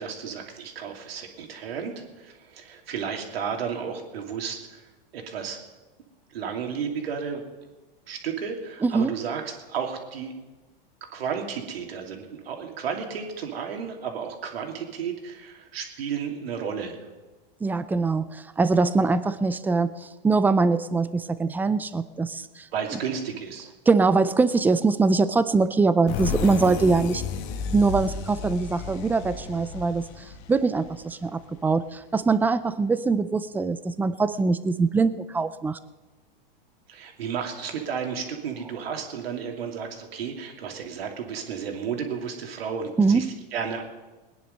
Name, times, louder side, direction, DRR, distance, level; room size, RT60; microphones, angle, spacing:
voice 1, 0.0-4.8 5.1-5.6 6.3-7.4 8.1-10.3 11.1-17.0 22.7-23.7 36.9-43.8, right 7 dB, 85° right, 2 dB, 2.7 m, -33 dB
voice 2, 8.8-9.1 17.6-22.7 23.9-27.2 27.7-30.0 30.5-35.8 43.0-43.3, right 4 dB, 5° right, 14 dB, 0.4 m, -23 dB
sound 1, 26.1-31.6, left 5 dB, 45° left, 1.5 m, -33 dB
20.5 x 10.0 x 5.4 m, 1.2 s
hypercardioid pair, 130°, 29 cm